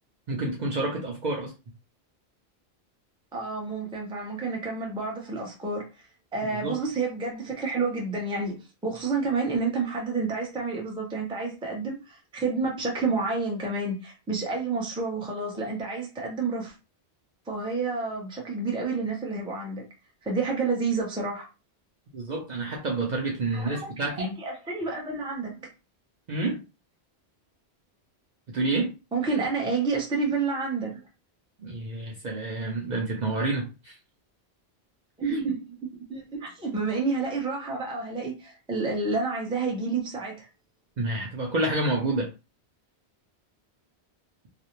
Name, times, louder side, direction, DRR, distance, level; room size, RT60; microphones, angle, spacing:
voice 1, 0.3-1.5 6.5-6.8 22.1-24.3 26.3-26.6 28.5-28.9 31.6-34.0 35.3-35.4 41.0-42.3, right 2 dB, 50° right, 0.6 m, -29 dB
voice 2, 3.3-5.9 6.3-16.7 17.5-19.8 20.2-21.5 23.5-23.9 24.2-25.6 29.1-31.0 35.2-35.7 36.1-40.5, right 4 dB, 5° right, 0.4 m, -29 dB
2.5 x 2.0 x 2.9 m
omnidirectional pair, 1.1 m